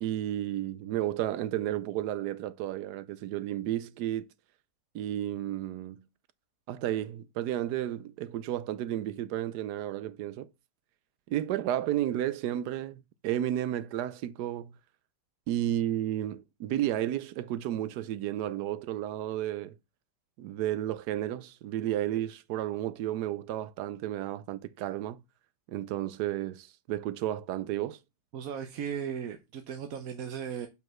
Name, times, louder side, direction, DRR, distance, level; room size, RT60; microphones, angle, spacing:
voice 1, 0.0-4.3 4.9-6.0 6.7-10.5 11.3-14.8 15.5-19.7 20.4-25.2 25.7-28.0, right 12 dB, 85° right, 1.2 m, -32 dB
voice 2, 28.3-30.7, right 8 dB, 65° right, 1.1 m, -36 dB
5.4 x 4.7 x 6.1 m
omnidirectional pair, 1.7 m